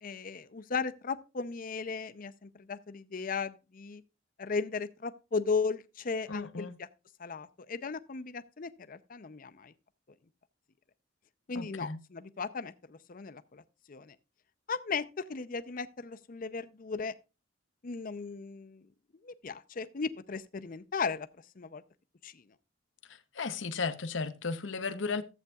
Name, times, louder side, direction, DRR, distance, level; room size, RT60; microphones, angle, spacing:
voice 1, 0.0-4.0 4.4-6.9 7.2-9.7 11.5-13.6 13.9-14.2 14.7-17.1 17.8-18.9 19.2-21.3 21.6-21.8 22.2-22.4, left 5 dB, 45° left, 0.6 m, -36 dB
voice 2, 6.3-6.7 11.5-12.0 23.1-25.2, left 4 dB, 80° left, 0.8 m, -35 dB
14.0 x 8.0 x 2.3 m
head